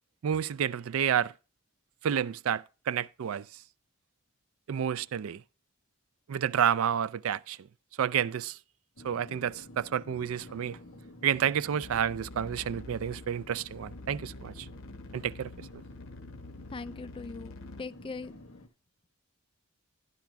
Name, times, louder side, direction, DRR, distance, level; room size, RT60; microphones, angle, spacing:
voice 1, 0.2-1.3 2.0-3.4 4.7-5.4 6.3-7.6 8.0-8.6 9.0-10.8 11.2-14.7 15.1-15.5, right 8 dB, 70° right, 0.4 m, -30 dB
sound 1, 9.0-18.7, left 1 dB, 90° left, 1.4 m, -50 dB
sound 2, 11.8-17.8, left 2 dB, 65° left, 0.9 m, -47 dB
voice 2, 16.7-18.3, left 4 dB, 25° left, 0.4 m, -41 dB
12.0 x 11.5 x 2.3 m
head